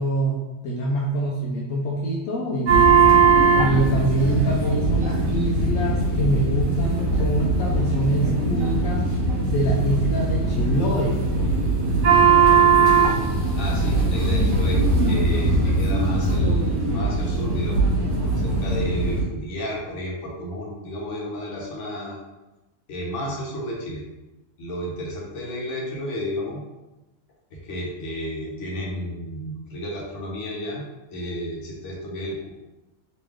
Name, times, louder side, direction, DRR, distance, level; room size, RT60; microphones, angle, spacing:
voice 1, 0.0-2.9 3.5-9.0 9.5-11.2, right 1 dB, 80° left, -3 dB, 1.0 m, -25 dB
sound 1, 2.7-19.2, right 4 dB, 70° right, 1.3 m, -20 dB
voice 2, 13.5-17.9 18.3-22.2 22.9-24.0 24.6-26.6 27.5-30.8 31.1-32.5, equal, 65° left, -3 dB, 1.2 m, -32 dB
3.1 x 2.9 x 3.5 m, 1.0 s
omnidirectional pair, 1.4 m